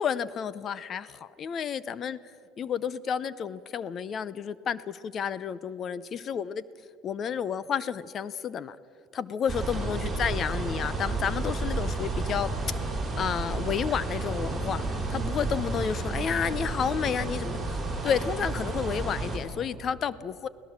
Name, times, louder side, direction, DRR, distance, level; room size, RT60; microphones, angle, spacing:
voice 1, 0.0-2.2 2.6-6.6 7.0-8.8 9.1-12.5 13.2-17.8 18.0-20.5, left 7 dB, 40° left, 18 dB, 0.6 m, -31 dB
sound 1, 9.5-19.4, right 3 dB, 15° right, 5.8 m, -31 dB
24.0 x 17.0 x 7.3 m, 2.4 s
cardioid pair, 130°, 0 cm